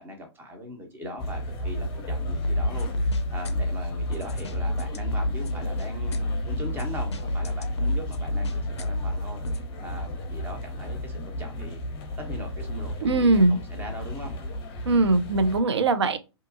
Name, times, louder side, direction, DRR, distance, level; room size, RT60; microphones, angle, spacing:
voice 1, 0.0-6.2 6.4-11.8 12.2-14.3, equal, 15° right, 0.8 m, -40 dB
sound 1, 1.2-15.6, equal, 30° left, 0.7 m, -33 dB
sound 2, 2.4-9.6, left 1 dB, 80° left, 0.4 m, -29 dB
voice 2, 13.0-13.6 14.9-16.2, right 2 dB, 75° right, 0.5 m, -21 dB
2.7 x 2.3 x 2.5 m
figure-of-eight pair, 115°, 14 cm